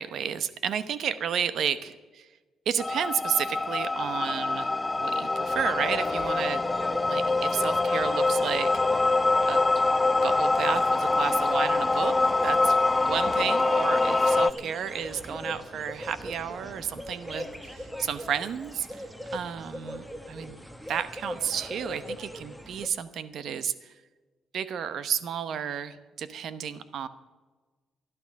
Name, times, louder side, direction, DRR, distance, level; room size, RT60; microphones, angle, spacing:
voice 1, 0.0-2.3 2.7-6.7 7.1-9.1 9.4-9.7 10.2-12.1 12.4-20.6 20.9-23.9 24.5-27.1, right 8 dB, 70° right, 13 dB, 0.9 m, -32 dB
sound 1, 2.8-14.5, left 3 dB, 20° left, 0.4 m, -25 dB
sound 2, 5.4-22.9, equal, 5° right, 1.5 m, -39 dB
13.5 x 12.0 x 6.5 m, 1.3 s
cardioid pair, 90°, 0 cm